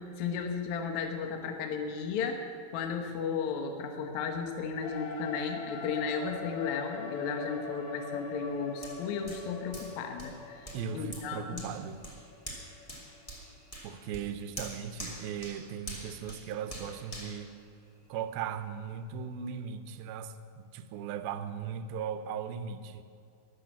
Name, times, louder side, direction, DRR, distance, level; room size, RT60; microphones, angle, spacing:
voice 1, 0.0-11.7, left 5 dB, 65° left, 4 dB, 1.9 m, -34 dB
sound 1, 4.8-13.3, left 4 dB, 85° left, 1.3 m, -42 dB
Hands, 8.8-18.3 18.8-18.9, right 1 dB, 15° left, 1.1 m, -46 dB
voice 2, 10.7-12.0 13.8-17.6 18.1-23.0, right 7 dB, 75° right, 10 dB, 2.3 m, -38 dB
13.5 x 11.5 x 7.4 m, 2.3 s
omnidirectional pair, 4.9 m